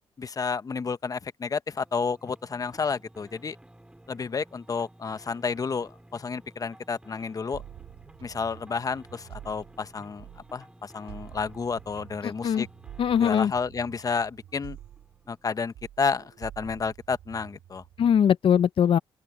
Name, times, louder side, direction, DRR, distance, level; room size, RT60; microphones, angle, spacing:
voice 1, 0.2-3.6 4.1-7.6 8.2-10.2 10.5-12.7 13.2-14.8 15.3-17.8, left 5 dB, 35° left, 1.0 m, -31 dB
sound 1, 1.7-15.8, right 1 dB, 10° right, 4.8 m, -54 dB
sound 2, 7.5-10.6 11.1-15.5 15.7-18.2, right 12 dB, 85° right, 2.8 m, -48 dB
voice 2, 12.2-12.7 13.0-13.5 18.0-19.0, left 8 dB, 60° left, 0.9 m, -21 dB
open air
cardioid pair, 70°, 10 cm